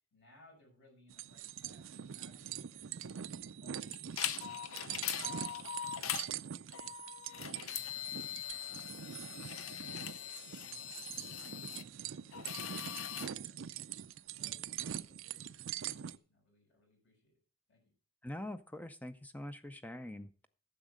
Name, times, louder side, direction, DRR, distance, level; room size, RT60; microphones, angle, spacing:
voice 1, 0.1-3.2 3.6-6.9 7.2-8.2 8.6-12.4 12.7-13.9 14.2-17.3 17.7-17.8, left 1 dB, 55° left, 0 dB, 6.4 m, -66 dB
sound 1, 1.1-16.2, right 10 dB, 60° right, 0.4 m, -44 dB
sound 2, 3.9-6.3 6.7-11.8 12.3-13.3, left 10 dB, 70° left, 0.7 m, -41 dB
voice 2, 18.2-20.5, left 1 dB, 5° left, 11 dB, 0.5 m, -44 dB
10.5 x 7.2 x 6.3 m, 0.40 s
head